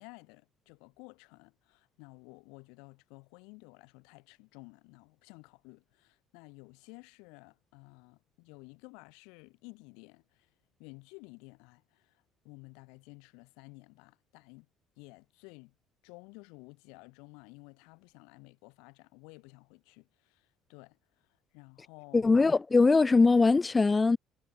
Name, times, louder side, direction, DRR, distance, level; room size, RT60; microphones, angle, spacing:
voice 1, 0.0-10.5 10.8-14.7 15.0-15.7 16.0-21.3 21.5-22.3, left 31 dB, 85° left, 5.5 m, -53 dB
voice 2, 22.1-24.2, left 3 dB, 25° left, 1.0 m, -22 dB
supercardioid pair, 80°, 0 cm